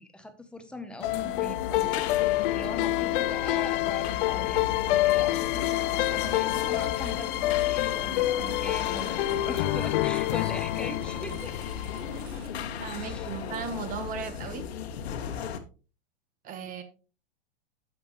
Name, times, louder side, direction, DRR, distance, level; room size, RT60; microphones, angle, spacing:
voice 1, 0.0-2.0 2.5-11.7 12.8-13.3, left 1 dB, 5° left, 7 dB, 0.7 m, -41 dB
sound 1, 1.0-15.6, left 7 dB, 75° left, 1.3 m, -36 dB
sound 2, 1.0-12.3, left 16 dB, 55° left, 0.5 m, -27 dB
Engine, 5.4-12.5, right 6 dB, 70° right, 1.9 m, -52 dB
voice 2, 12.8-14.6 16.4-16.8, right 6 dB, 25° right, 10 dB, 1.1 m, -36 dB
8.7 x 7.6 x 3.0 m, 0.35 s
supercardioid pair, 145°, 32 cm